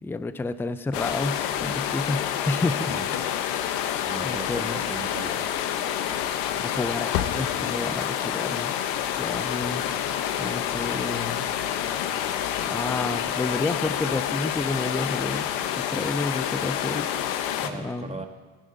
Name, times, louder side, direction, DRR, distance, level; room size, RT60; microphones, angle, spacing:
voice 1, 0.0-2.9 4.2-4.8 6.6-8.7 9.2-9.8 10.4-11.4 12.7-17.1 17.6-18.2, left 2 dB, 5° left, 12 dB, 0.5 m, -30 dB
sound 1, 0.9-17.7, left 10 dB, 85° left, 1.2 m, -28 dB
Engine starting / Slam, 0.9-2.3 2.5-15.6, left 10 dB, 60° left, 1.0 m, -42 dB
voice 2, 4.1-5.5 17.6-18.3, right 4 dB, 15° right, 4 dB, 1.5 m, -37 dB
28.5 x 10.0 x 4.0 m, 1.4 s
supercardioid pair, 110°, 49 cm